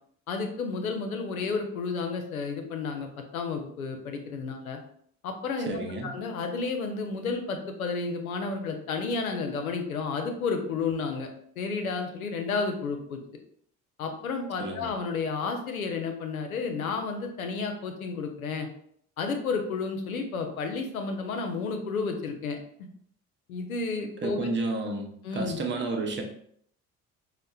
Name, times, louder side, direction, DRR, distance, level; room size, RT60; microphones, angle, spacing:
voice 1, 0.3-4.8 5.2-11.3 11.6-13.2 14.0-18.7 19.2-22.9 23.5-24.5 25.2-25.6, left 4 dB, 80° left, 5 dB, 0.5 m, -31 dB
voice 2, 5.7-6.2 14.6-14.9 24.2-26.2, right 3 dB, 25° right, 2 dB, 0.7 m, -31 dB
5.2 x 2.1 x 2.2 m, 0.64 s
figure-of-eight pair, 55°, 42 cm